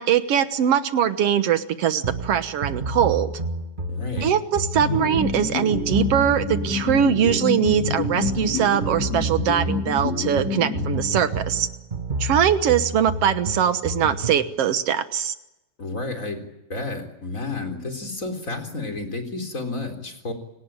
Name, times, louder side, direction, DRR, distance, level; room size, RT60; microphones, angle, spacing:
voice 1, 0.0-3.3 4.2-11.7 12.2-15.3, right 9 dB, 60° right, 11 dB, 2.0 m, -22 dB
sound 1, 2.0-14.5, right 2 dB, 35° right, 0.8 m, -30 dB
voice 2, 3.9-4.4 15.8-16.4 16.7-20.3, left 3 dB, 25° left, 5 dB, 4.2 m, -31 dB
sound 2, 4.8-11.5, left 4 dB, 60° left, 6.1 m, -28 dB
28.5 x 18.5 x 9.0 m, 0.92 s
omnidirectional pair, 3.3 m